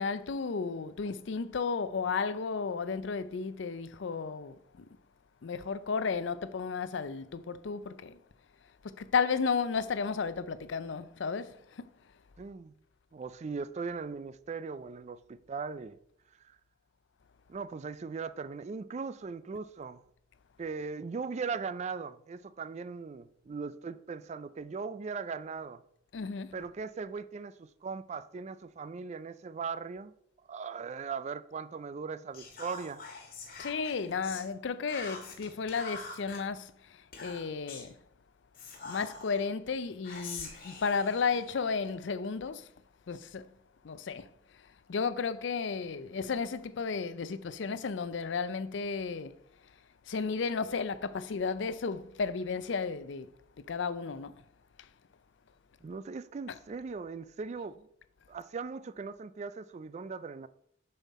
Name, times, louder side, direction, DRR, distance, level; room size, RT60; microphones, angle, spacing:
voice 1, 0.0-4.8 5.4-8.2 8.8-11.9 26.1-26.5 33.6-38.0 38.8-42.7 43.1-43.5 43.8-44.3 44.9-49.4 50.1-53.3 53.7-54.4 56.5-56.6, left 5 dB, 70° left, 0.5 m, -33 dB
voice 2, 12.4-12.7 13.1-16.0 17.5-20.0 20.6-25.8 26.5-30.1 30.5-33.1 55.8-57.9 58.3-60.5, right 5 dB, 35° right, 0.3 m, -39 dB
Whispering, 32.3-34.5 34.9-36.4 37.1-37.9 38.5-39.4 40.0-41.9, left 4 dB, 50° left, 1.5 m, -45 dB
7.0 x 5.6 x 4.2 m
head